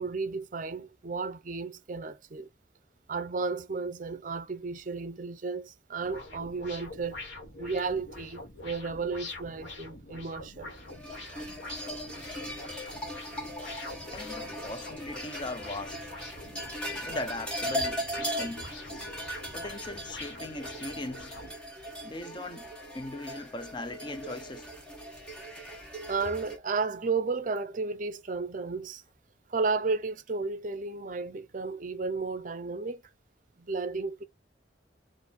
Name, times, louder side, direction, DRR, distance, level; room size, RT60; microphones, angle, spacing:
voice 1, 0.0-2.5 3.1-7.2 7.6-10.7 26.1-29.0 29.5-33.0 33.6-34.2, right 4 dB, 45° right, 0.5 m, -33 dB
sound 1, 6.0-21.5, left 2 dB, 80° left, 1.5 m, -45 dB
sound 2, 10.9-26.6, equal, 5° left, 1.2 m, -38 dB
voice 2, 14.1-16.1 17.0-18.7 19.5-21.4 22.0-24.7, left 2 dB, 25° left, 0.5 m, -39 dB
4.1 x 2.6 x 4.4 m
head